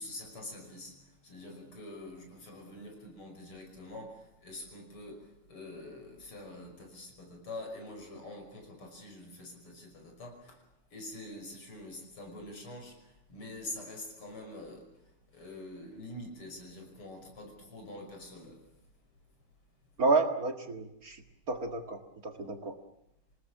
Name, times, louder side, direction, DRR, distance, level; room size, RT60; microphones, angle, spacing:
voice 1, 0.0-10.6 10.9-18.8, left 1 dB, 80° left, 6.8 m, -46 dB
voice 2, 20.0-21.2 21.5-22.0 22.2-22.7, right 3 dB, 45° right, 2.3 m, -30 dB
27.0 x 19.0 x 7.4 m
omnidirectional pair, 2.4 m